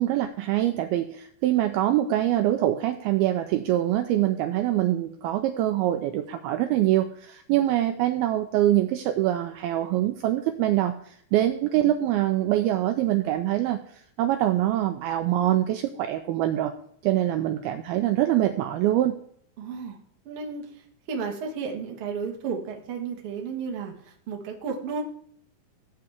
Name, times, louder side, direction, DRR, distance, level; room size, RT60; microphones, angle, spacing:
voice 1, 0.0-16.7 17.0-19.2, right 13 dB, 85° right, 7 dB, 2.2 m, -24 dB
voice 2, 19.6-20.0 20.2-25.0, right 5 dB, 55° right, 1 dB, 1.6 m, -33 dB
16.5 x 8.0 x 3.5 m, 0.63 s
omnidirectional pair, 4.9 m